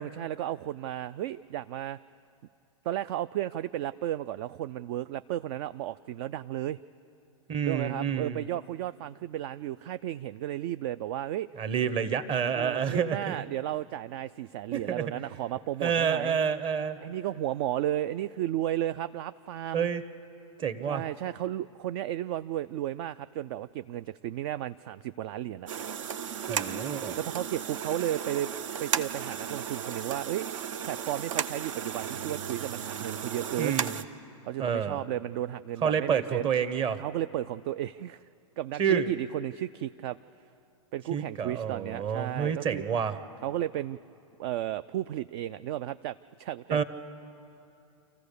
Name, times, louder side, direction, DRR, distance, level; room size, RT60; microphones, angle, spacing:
voice 1, 0.0-2.0 2.8-6.8 7.6-11.5 12.5-16.4 17.0-19.9 20.9-25.7 26.9-28.5 28.8-30.5 30.8-33.8 34.4-36.5 37.0-38.2 38.6-40.2 40.9-42.9 43.4-44.0 44.4-46.8, right 13 dB, 50° right, 14 dB, 0.4 m, -33 dB
voice 2, 7.5-8.4 11.6-13.4 14.7-15.1 15.8-17.0 19.7-20.0 20.6-21.0 26.5-27.2 33.6-34.0 34.6-35.0 35.8-37.0 38.8-39.1 41.1-43.2 46.7-46.8, right 7 dB, 30° right, 12 dB, 1.1 m, -28 dB
sound 1, 25.7-34.0, right 8 dB, 70° right, 0.8 m, -35 dB
27.5 x 15.0 x 6.8 m, 2.7 s
hypercardioid pair, 110°, 17 cm